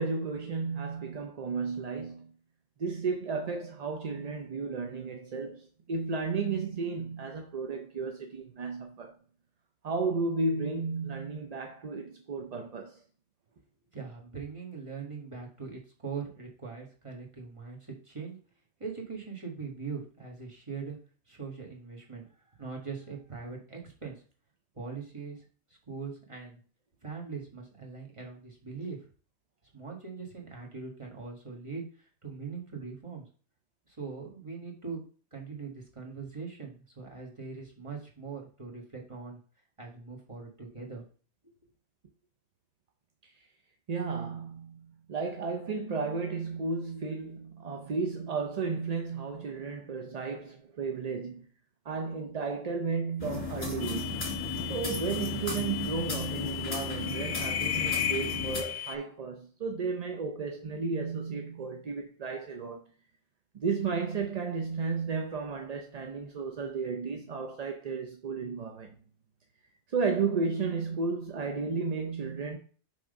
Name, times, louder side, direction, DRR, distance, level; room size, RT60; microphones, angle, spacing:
voice 1, 0.0-2.3 2.8-9.1 9.8-13.0 43.2-43.5 43.9-51.5 51.8-54.3 54.7-62.8 63.5-68.9 69.9-72.6, right 4 dB, 45° right, 0.6 m, -33 dB
voice 2, 13.9-18.4 18.8-21.0 21.3-22.3 22.6-24.2 24.7-25.4 25.9-26.6 27.0-29.0 29.7-31.9 32.2-33.3 33.9-35.0 35.3-39.4 39.8-41.0 41.4-41.5, right 5 dB, 25° right, 1.6 m, -41 dB
sound 1, 53.2-58.6, left 2 dB, 30° left, 1.7 m, -35 dB
sound 2, 53.8-59.0, left 11 dB, 70° left, 0.8 m, -35 dB
5.9 x 3.6 x 5.1 m
omnidirectional pair, 1.2 m